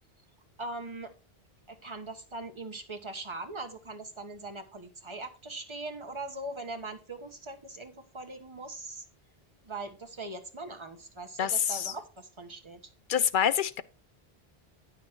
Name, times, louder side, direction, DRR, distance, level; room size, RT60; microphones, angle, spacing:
voice 1, 0.6-1.1 1.7-9.0 9.6-12.8, right 2 dB, 30° right, 1.3 m, -41 dB
voice 2, 11.4-11.9 13.1-13.8, left 8 dB, 60° left, 0.7 m, -26 dB
9.3 x 6.6 x 4.5 m
omnidirectional pair, 1.0 m